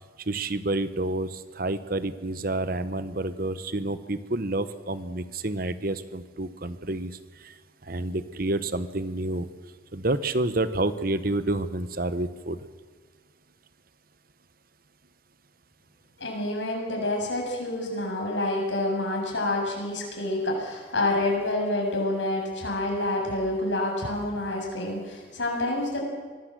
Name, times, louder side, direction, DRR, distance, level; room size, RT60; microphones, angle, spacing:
voice 1, 0.3-7.5 7.8-9.5 9.9-12.6, right 2 dB, 50° right, 13 dB, 1.1 m, -29 dB
voice 2, 16.2-26.0, left 2 dB, 75° left, 0 dB, 7.2 m, -28 dB
24.0 x 18.5 x 7.7 m, 1.5 s
head